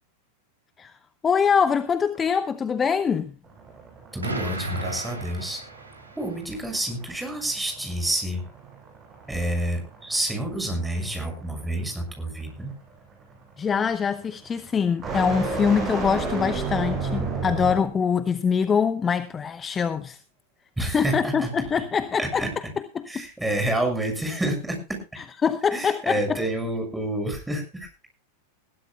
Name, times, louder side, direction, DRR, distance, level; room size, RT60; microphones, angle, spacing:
voice 1, 1.2-3.3 13.6-20.2 20.8-22.4 25.4-26.2, left 6 dB, 20° left, 0.8 m, -24 dB
sound 1, 3.5-18.0, right 4 dB, 25° right, 7.0 m, -34 dB
voice 2, 4.1-5.6 6.1-8.4 9.3-12.7 20.8-21.5 21.8-21.9 22.2-22.7 23.1-25.0 25.7-28.1, right 1 dB, 5° right, 6.6 m, -28 dB
Explosion, 4.2-6.4, right 2 dB, 80° right, 3.3 m, -34 dB
21.0 x 16.0 x 2.3 m
figure-of-eight pair, 90°, 0 cm